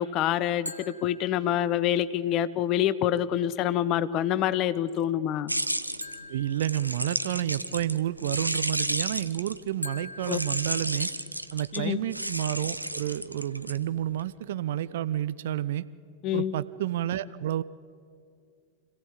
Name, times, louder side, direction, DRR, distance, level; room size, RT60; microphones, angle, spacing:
voice 1, 0.0-5.5 10.3-10.4 11.7-12.0 16.2-16.5, left 11 dB, 35° left, 16 dB, 0.8 m, -26 dB
sound 1, 0.7-2.0 6.0-7.5 9.8-11.5, left 2 dB, 85° left, 1.4 m, -43 dB
sound 2, 5.5-9.7 10.2-14.2, right 1 dB, 85° right, 0.8 m, -32 dB
voice 2, 6.3-11.1 11.5-15.8 16.3-17.6, right 12 dB, 55° right, 15 dB, 0.6 m, -30 dB
25.5 x 16.0 x 8.4 m, 2.2 s
figure-of-eight pair, 90°, 0 cm